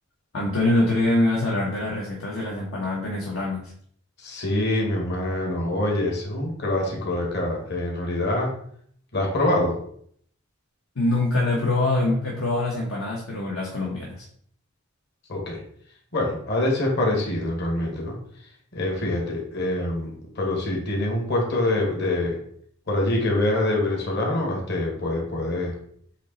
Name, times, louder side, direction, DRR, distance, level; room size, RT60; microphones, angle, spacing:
voice 1, 0.3-3.7 10.9-14.3, left 2 dB, 80° left, -3 dB, 1.4 m, -24 dB
voice 2, 4.2-8.5 9.1-9.8 15.3-15.6 16.1-18.2 18.7-22.4 22.9-25.8, left 1 dB, 55° left, 0 dB, 1.9 m, -25 dB
8.2 x 3.0 x 4.2 m, 0.62 s
head